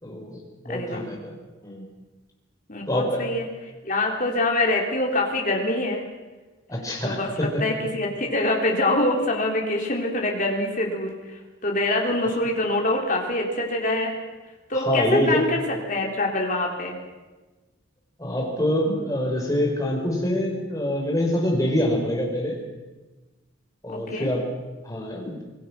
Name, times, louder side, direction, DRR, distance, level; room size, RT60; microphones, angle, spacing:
voice 1, 0.0-1.3 1.6-1.8 2.9-3.3 6.7-7.6 14.7-15.4 18.2-22.6 23.8-24.5 24.8-25.3, left 1 dB, 15° left, 0 dB, 4.5 m, -25 dB
voice 2, 0.7-1.1 2.7-3.5 3.8-6.0 7.0-11.1 11.6-14.2 14.7-17.0 23.9-24.3, left 2 dB, 40° left, 0 dB, 3.8 m, -25 dB
26.0 x 20.0 x 6.0 m, 1.2 s
head